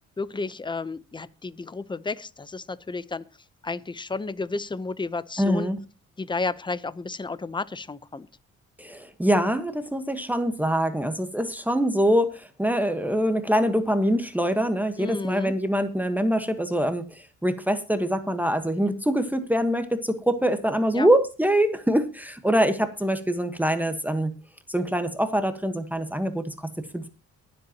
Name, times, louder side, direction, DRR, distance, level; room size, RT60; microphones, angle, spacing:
voice 1, 0.2-3.2 3.6-5.7 6.2-8.3 15.0-15.5 20.9-21.1, left 3 dB, 15° left, 0.8 m, -32 dB
voice 2, 5.4-5.8 8.8-24.3 24.7-27.1, equal, 5° right, 1.3 m, -24 dB
23.0 x 7.9 x 2.9 m
cardioid pair, 90°, 30 cm